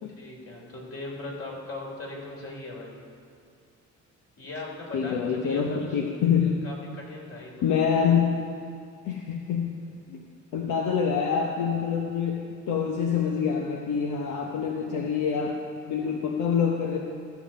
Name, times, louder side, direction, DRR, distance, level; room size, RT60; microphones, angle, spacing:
voice 1, 0.2-3.0 4.4-6.0 6.6-7.6, left 2 dB, 50° left, -2 dB, 3.1 m, -39 dB
voice 2, 4.9-6.6 7.6-8.3 9.0-9.7 10.1-10.2 10.5-15.5 15.9-17.0, left 7 dB, 80° left, 1 dB, 0.9 m, -26 dB
14.5 x 7.1 x 5.2 m, 2.3 s
cardioid pair, 90°, 30 cm